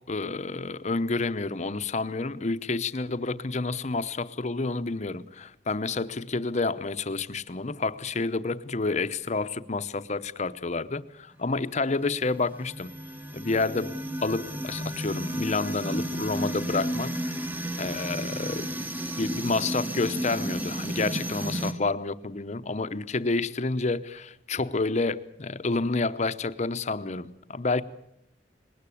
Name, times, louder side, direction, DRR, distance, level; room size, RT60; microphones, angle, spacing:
voice 1, 0.1-12.9 13.3-17.5 17.8-18.8 19.2-27.8, left 3 dB, 40° left, 0.8 m, -29 dB
sound 1, 11.9-21.7, right 1 dB, 10° right, 1.1 m, -33 dB
20.5 x 18.5 x 8.5 m
head